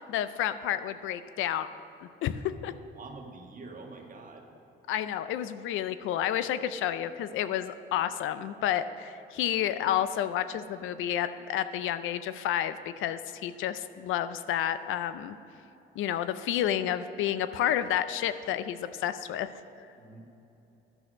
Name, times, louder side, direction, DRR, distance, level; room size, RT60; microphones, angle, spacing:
voice 1, 0.0-1.7 2.0-2.7 4.9-15.4 16.0-19.5, left 11 dB, 90° left, 12 dB, 0.5 m, -30 dB
voice 2, 2.9-4.5 20.0-20.3, right 3 dB, 45° right, 2 dB, 1.5 m, -46 dB
11.0 x 6.3 x 6.2 m, 3.0 s
cardioid pair, 90°, 20 cm